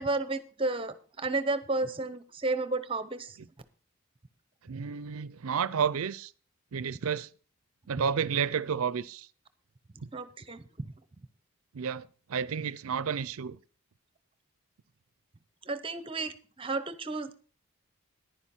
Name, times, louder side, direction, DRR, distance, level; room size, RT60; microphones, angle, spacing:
voice 1, 0.0-3.4 10.1-10.6 15.6-17.3, right 3 dB, 25° right, 0.8 m, -32 dB
voice 2, 4.6-6.3 6.7-7.3 7.9-9.3 10.0-10.1 11.7-13.6, right 7 dB, 75° right, 0.5 m, -31 dB
10.5 x 10.0 x 4.3 m
head